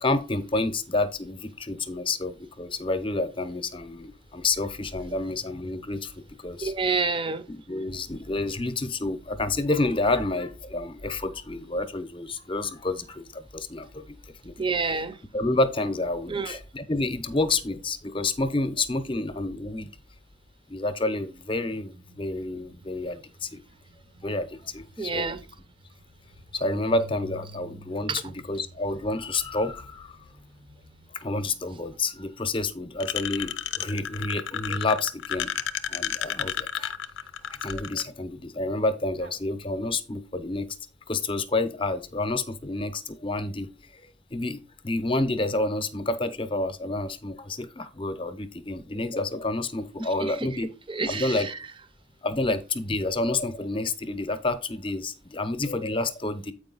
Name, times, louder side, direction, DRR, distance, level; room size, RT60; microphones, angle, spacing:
voice 1, 0.0-6.7 7.5-14.2 14.4-14.5 15.3-19.9 20.7-23.6 24.2-25.4 26.5-30.2 31.1-35.5 35.9-36.9 37.6-40.7 41.1-44.0 44.3-50.7 51.1-51.5 52.2-56.5, left 2 dB, 30° left, 0.8 m, -29 dB
voice 2, 6.6-7.5 14.6-15.2 16.3-16.6 25.0-25.4 28.1-28.2 50.0-51.6, right 4 dB, 30° right, 0.7 m, -29 dB
sound 1, 21.2-32.7 38.8-38.9 39.2-39.4, right 1 dB, 80° right, 1.3 m, -50 dB
sound 2, 33.0-38.0, left 9 dB, 80° left, 0.5 m, -31 dB
8.0 x 4.9 x 3.9 m
head